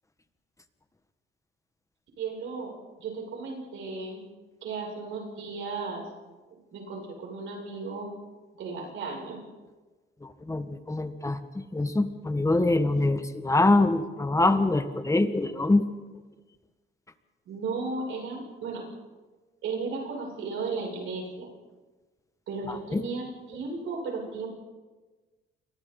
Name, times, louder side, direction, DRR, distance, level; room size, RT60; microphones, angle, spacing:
voice 1, 2.2-4.2 4.6-6.1 6.5-8.1 8.6-9.4 17.5-18.8 19.6-21.5 22.5-24.5, right 4 dB, 80° right, -1 dB, 7.1 m, -35 dB
voice 2, 10.2-15.8 22.7-23.0, left 2 dB, 15° left, 9 dB, 1.7 m, -24 dB
29.5 x 23.0 x 4.0 m, 1.3 s
cardioid pair, 90°, 20 cm